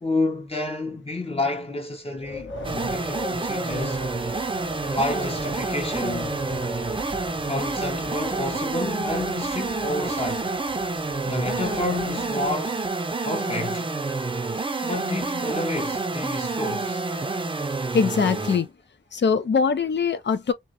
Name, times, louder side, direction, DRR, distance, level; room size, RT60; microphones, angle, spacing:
voice 1, 0.0-4.0 4.9-6.4 7.5-10.5 11.2-12.9 13.2-13.9 14.8-17.0, left 2 dB, 30° left, 0.7 m, -29 dB
Wind, 2.2-12.5, left 1 dB, 80° left, 1.4 m, -39 dB
sound 1, 2.6-18.7, right 3 dB, 25° right, 0.5 m, -28 dB
voice 2, 17.9-18.7 19.1-20.5, left 5 dB, 65° left, 0.5 m, -22 dB
3.0 x 2.3 x 2.5 m
wide cardioid pair, 100°, 20 cm